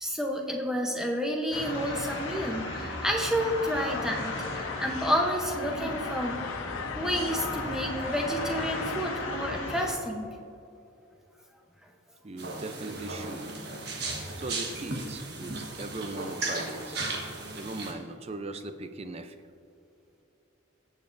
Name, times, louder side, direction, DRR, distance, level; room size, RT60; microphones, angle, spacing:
voice 1, 0.0-6.5 6.9-10.3, equal, 5° right, 1 dB, 0.8 m, -30 dB
sound 1, 1.5-9.9, left 2 dB, 65° left, 1.6 m, -35 dB
sound 2, 3.3-9.4, left 7 dB, 90° left, 0.4 m, -40 dB
voice 2, 12.2-13.6 14.4-17.0 17.5-19.4, right 2 dB, 30° right, 8 dB, 0.5 m, -39 dB
sound 3, 12.4-17.9, right 2 dB, 55° right, 1.3 m, -36 dB
17.5 x 7.3 x 2.6 m, 2.7 s
head